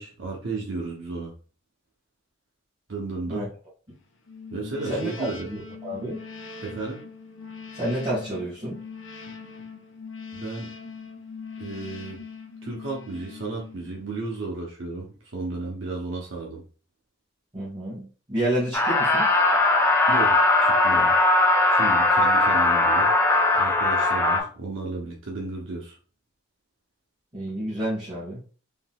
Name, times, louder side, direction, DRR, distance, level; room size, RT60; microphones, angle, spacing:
voice 1, 0.0-1.3 2.9-3.5 4.5-5.5 6.6-7.0 10.3-10.7 11.6-12.2 12.6-16.6 20.1-21.1 21.7-23.1 23.5-26.0, right 3 dB, 80° right, -2 dB, 0.8 m, -33 dB
sound 1, 4.3-14.2, left 4 dB, 70° left, 0.6 m, -41 dB
voice 2, 4.9-6.2 7.7-8.8 17.5-19.3 27.3-28.4, right 1 dB, 30° right, -9 dB, 1.4 m, -29 dB
sound 2, 18.7-24.4, left 2 dB, 10° left, 0.5 m, -19 dB
3.7 x 2.9 x 2.3 m, 0.39 s
head